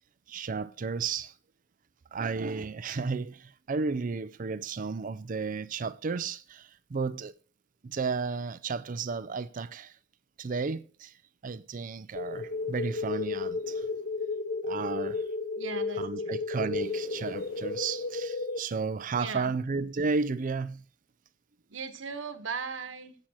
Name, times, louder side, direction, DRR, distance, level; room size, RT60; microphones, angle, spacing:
voice 1, 0.3-1.3 2.1-7.3 7.8-9.9 10.4-11.1 11.4-13.9 14.6-15.2 16.0-20.8, right 4 dB, 45° right, 0.4 m, -33 dB
sound 1, 12.2-18.6, left 3 dB, 50° left, 1.0 m, -33 dB
voice 2, 15.6-16.4 19.1-19.5 21.7-23.2, right 5 dB, 70° right, 1.1 m, -38 dB
8.7 x 7.4 x 6.3 m
head